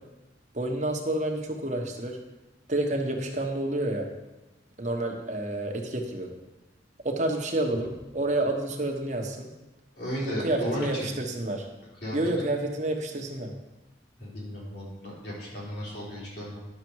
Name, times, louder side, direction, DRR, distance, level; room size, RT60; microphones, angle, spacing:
voice 1, 0.5-2.2 2.7-4.1 4.8-6.3 7.0-9.5 10.2-11.7 12.1-13.5, right 1 dB, 40° right, 2 dB, 1.3 m, -29 dB
voice 2, 9.9-11.1 12.0-12.2 14.2-16.6, equal, 60° left, -6 dB, 3.8 m, -34 dB
11.0 x 6.8 x 4.8 m, 1.1 s
head